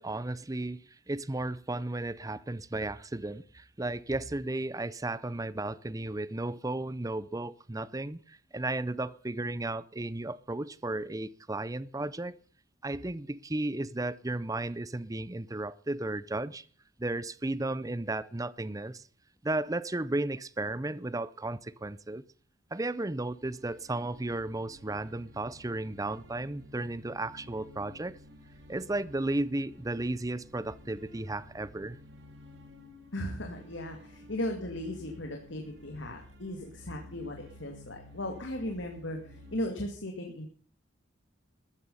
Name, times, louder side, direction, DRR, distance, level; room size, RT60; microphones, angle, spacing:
voice 1, 0.0-12.4 12.8-16.6 17.0-19.0 19.4-22.2 22.7-28.2 28.7-32.0, right 2 dB, 15° right, 0.6 m, -34 dB
sound 1, 23.2-39.7, left 1 dB, 60° right, 2.7 m, -53 dB
voice 2, 33.1-40.5, left 1 dB, 70° left, 2.4 m, -37 dB
14.0 x 13.5 x 5.6 m
head